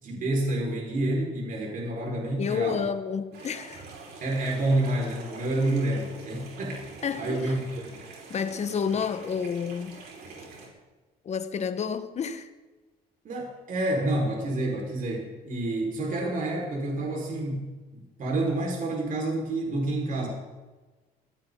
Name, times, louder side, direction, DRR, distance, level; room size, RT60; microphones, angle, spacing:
voice 1, 0.0-2.9 4.2-8.0 13.2-20.3, right 1 dB, 55° right, 5.1 m, -29 dB
voice 2, 2.4-3.9 7.0-7.5 8.3-10.0 11.2-12.5, left 6 dB, 40° left, 1.4 m, -30 dB
sound 1, 3.3-10.7, right 3 dB, 75° right, 5.5 m, -45 dB
20.0 x 16.5 x 4.0 m
cardioid pair, 110°, 17 cm